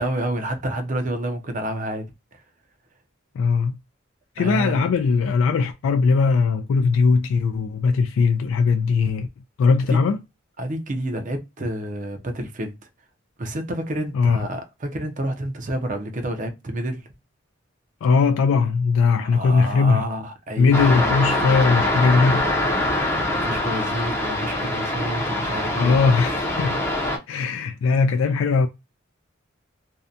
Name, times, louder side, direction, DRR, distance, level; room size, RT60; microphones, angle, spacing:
voice 1, 0.0-2.1 2.3-2.4 4.4-4.9 9.9-10.0 10.6-12.7 13.4-17.1 19.2-21.1 23.0-26.0, right 1 dB, 40° right, 0.5 m, -29 dB
voice 2, 3.4-3.8 4.4-9.3 9.6-10.2 14.1-14.4 18.0-20.1 20.6-22.5 25.7-26.8 27.3-28.7, left 4 dB, 80° left, 0.3 m, -19 dB
sound 1, 20.7-27.2, left 1 dB, 15° left, 0.5 m, -24 dB
2.6 x 2.1 x 2.4 m
head